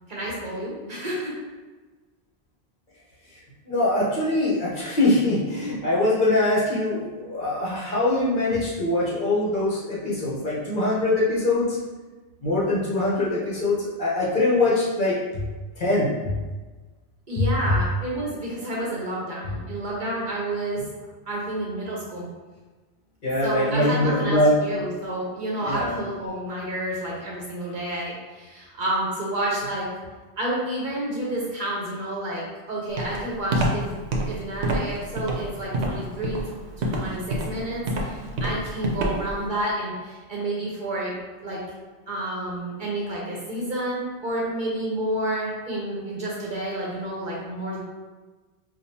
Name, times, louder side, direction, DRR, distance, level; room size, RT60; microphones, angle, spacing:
voice 1, 0.1-1.3 17.3-20.8 21.3-22.3 23.4-29.9 30.4-33.9 34.3-41.6 42.1-47.8, right 1 dB, 50° right, -4 dB, 0.9 m, -30 dB
voice 2, 3.6-11.8 12.4-15.5 15.8-16.4 17.4-17.8 23.2-24.6 25.6-26.0 37.8-38.4, left 2 dB, 50° left, -7 dB, 1.1 m, -23 dB
Walk footsteps, 33.0-39.4, right 1 dB, 80° right, 0.9 m, -26 dB
4.9 x 2.4 x 2.7 m, 1.3 s
omnidirectional pair, 1.1 m